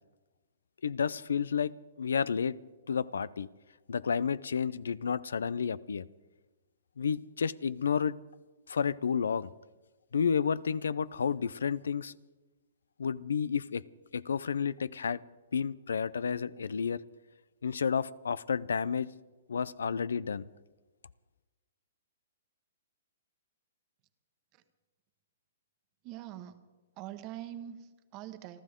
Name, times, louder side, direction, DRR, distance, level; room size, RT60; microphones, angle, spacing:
voice 1, 0.8-1.7 2.0-2.6 2.9-3.5 3.9-6.0 7.0-8.1 8.7-9.5 10.1-12.1 13.0-13.8 14.1-15.2 15.5-17.0 17.6-19.1 19.5-20.4, left 6 dB, 85° left, 20 dB, 0.5 m, -31 dB
voice 2, 26.0-26.6 27.0-28.6, right 12 dB, 35° right, 10 dB, 1.3 m, -44 dB
28.5 x 12.5 x 3.7 m, 1.2 s
hypercardioid pair, 140°, 0 cm